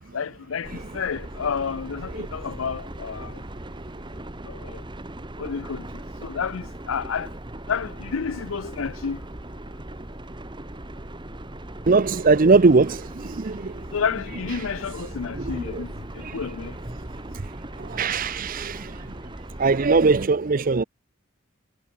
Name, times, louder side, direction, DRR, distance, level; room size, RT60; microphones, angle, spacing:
voice 1, 0.1-3.4 4.5-4.8 5.4-5.9 6.2-7.3 7.7-9.2 13.9-16.8, left 6 dB, 80° left, 0.5 m, -30 dB
sound 1, 0.6-20.3, right 1 dB, 25° right, 1.4 m, -38 dB
voice 2, 11.9-13.8 15.3-15.8 16.2-16.4 17.8-19.1 19.6-20.8, right 4 dB, 40° right, 0.6 m, -21 dB
head